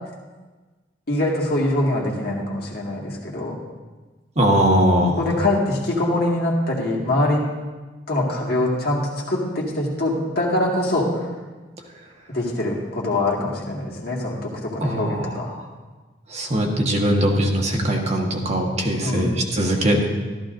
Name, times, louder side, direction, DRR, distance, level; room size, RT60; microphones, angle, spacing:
voice 1, 1.1-3.6 5.2-7.4 8.1-9.0 9.3-11.3 12.3-15.5 19.0-19.3, left 1 dB, 55° left, -2 dB, 2.0 m, -23 dB
voice 2, 4.4-5.2 14.8-15.3 16.3-20.0, equal, 35° right, 0 dB, 1.3 m, -20 dB
14.0 x 13.0 x 2.6 m, 1.3 s
head